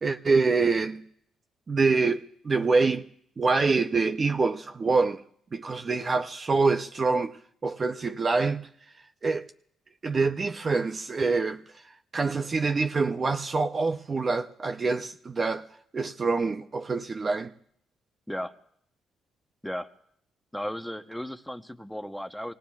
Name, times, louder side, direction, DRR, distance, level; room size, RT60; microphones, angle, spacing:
voice 1, 0.0-1.0 1.7-3.1 3.4-5.2 5.5-7.4 7.6-8.6 9.2-9.5 10.0-11.6 12.1-15.6 15.9-17.5, right 4 dB, 35° right, 0.6 m, -25 dB
voice 2, 20.5-22.5, equal, ahead, 0.8 m, -35 dB
25.0 x 18.5 x 2.4 m
cardioid pair, 90°, 0 cm